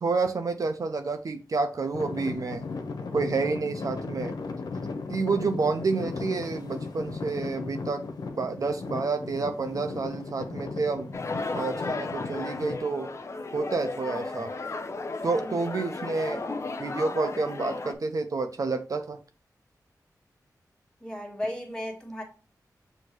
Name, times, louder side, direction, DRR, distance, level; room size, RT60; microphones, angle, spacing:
voice 1, 0.0-2.6 3.1-4.3 5.1-8.0 8.4-11.1 11.5-13.1 13.5-14.5 15.2-16.4 16.8-19.2, right 4 dB, 55° right, 0.5 m, -29 dB
Traffic noise roadway noise / Engine, 1.9-12.8, left 4 dB, 85° left, 0.6 m, -36 dB
sound 1, 11.1-17.9, left 3 dB, 45° left, 0.6 m, -34 dB
voice 2, 21.0-22.2, left 1 dB, 15° left, 1.5 m, -34 dB
6.4 x 2.7 x 3.0 m
wide cardioid pair, 80°, 7 cm